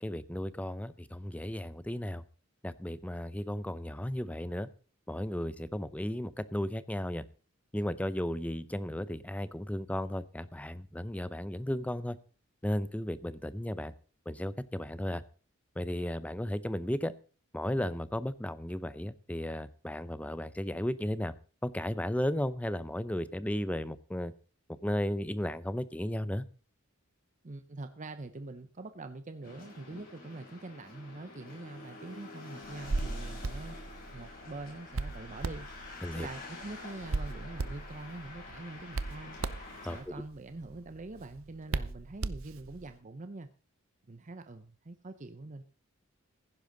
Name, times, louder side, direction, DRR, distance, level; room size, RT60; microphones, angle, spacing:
voice 1, 0.0-2.2 2.6-4.7 5.1-7.2 7.7-12.2 12.6-13.9 14.3-15.2 15.8-17.1 17.5-21.3 21.6-24.3 24.8-26.4 36.0-36.3 39.8-40.0, left 1 dB, 5° left, 15 dB, 0.6 m, -34 dB
voice 2, 27.4-33.8 34.1-35.7 36.1-39.4 39.8-43.5 44.1-45.6, right 2 dB, 35° right, 10 dB, 0.7 m, -44 dB
Cars Driving By, 29.4-40.0, left 3 dB, 45° left, 6.8 m, -48 dB
Hands, 32.6-42.9, right 3 dB, 75° right, 0.7 m, -38 dB
15.5 x 10.5 x 3.9 m, 0.38 s
head